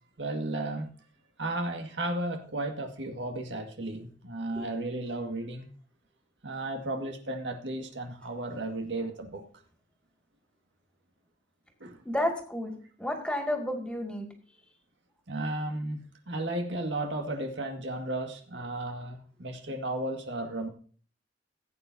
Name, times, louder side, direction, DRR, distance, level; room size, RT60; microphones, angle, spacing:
voice 1, 0.2-0.9 1.4-5.7 6.4-9.4 11.8-12.0 15.3-20.7, right 2 dB, 80° right, 4 dB, 1.9 m, -34 dB
voice 2, 12.1-12.7 13.0-14.3, left 1 dB, 5° left, 3 dB, 2.2 m, -31 dB
16.5 x 8.8 x 2.7 m, 0.43 s
head